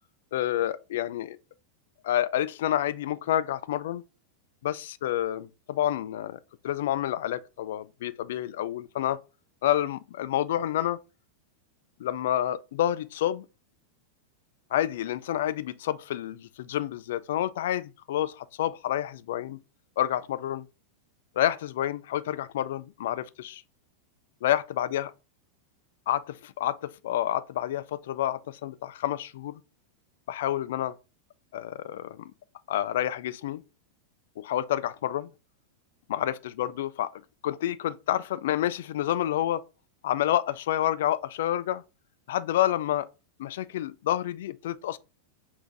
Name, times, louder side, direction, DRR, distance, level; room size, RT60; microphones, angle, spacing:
voice 1, 0.3-1.4 2.0-4.0 4.6-9.2 9.6-11.0 12.0-13.5 14.7-19.6 20.0-20.7 21.4-23.6 24.4-25.1 26.1-29.6 30.3-30.9 31.5-32.3 32.7-33.6 34.4-35.3 36.1-37.1 37.4-39.6 40.0-41.8 42.3-43.1 43.4-45.0, left 12 dB, 55° left, 0.3 m, -29 dB
5.7 x 2.6 x 3.4 m
figure-of-eight pair, 90°, 0 cm